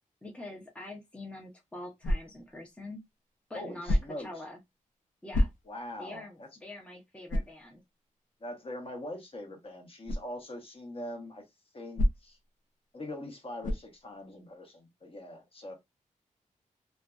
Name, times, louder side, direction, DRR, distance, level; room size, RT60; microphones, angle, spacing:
voice 1, 0.2-3.0 3.5-4.6 5.2-5.5 6.0-7.8, left 2 dB, 10° left, 0.6 m, -44 dB
sound 1, 2.0-2.6 3.8-4.3 5.3-5.9 6.4-6.5 7.3-7.6 10.0-10.3 11.9-12.5 13.6-14.0, left 1 dB, 80° left, 0.4 m, -29 dB
voice 2, 3.5-4.3 5.7-6.5 8.4-11.4 11.7-12.4 12.9-15.7, left 1 dB, 45° left, 1.0 m, -42 dB
2.5 x 2.2 x 2.3 m
cardioid pair, 85°, 13 cm